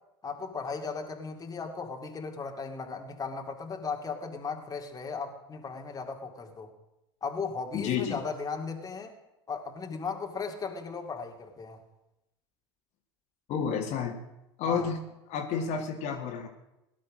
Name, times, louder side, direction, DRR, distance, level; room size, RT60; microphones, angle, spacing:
voice 1, 0.2-6.7 7.2-9.1 9.5-11.8 14.6-14.9, left 5 dB, 25° left, 3 dB, 2.3 m, -36 dB
voice 2, 7.7-8.2 13.5-14.1 14.6-15.0 15.3-16.5, left 6 dB, 55° left, 3 dB, 2.2 m, -30 dB
17.5 x 11.0 x 6.3 m, 0.91 s
hypercardioid pair, 85°, 14 cm